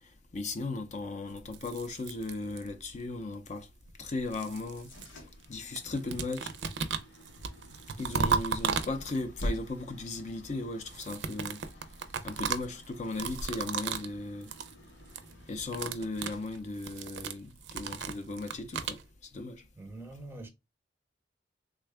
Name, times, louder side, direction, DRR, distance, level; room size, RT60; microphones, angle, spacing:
voice 1, 0.3-3.7 4.0-4.9 5.5-6.5 8.0-11.6 12.2-14.5 15.5-19.6, left 2 dB, 40° left, 0.5 m, -37 dB
sound 1, 1.4-2.9 3.9-5.5 5.7-9.4 10.8-14.1 14.4-14.7 15.0-15.3 15.6-19.0, right 6 dB, 70° right, 0.5 m, -35 dB
sound 2, 4.5-17.4, equal, 90° left, 0.9 m, -46 dB
voice 2, 19.8-20.5, right 2 dB, 15° right, 0.6 m, -44 dB
3.5 x 2.2 x 3.2 m
head